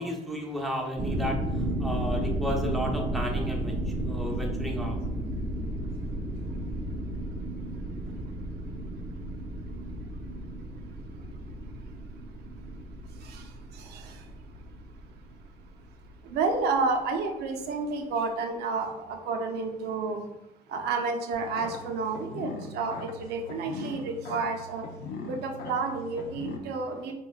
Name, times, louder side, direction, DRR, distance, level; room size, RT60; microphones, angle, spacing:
voice 1, 0.0-5.0, equal, ahead, 0 dB, 0.7 m, -33 dB
sound 1, 1.0-16.7, right 1 dB, 35° right, 0.6 m, -33 dB
voice 2, 13.7-14.2 16.3-20.2 20.7-24.8 25.2-27.1, right 4 dB, 75° right, 4 dB, 0.6 m, -30 dB
sound 2, 21.3-26.6, left 3 dB, 65° left, 0.5 m, -40 dB
4.1 x 3.1 x 2.3 m, 0.92 s
cardioid pair, 110°, 17 cm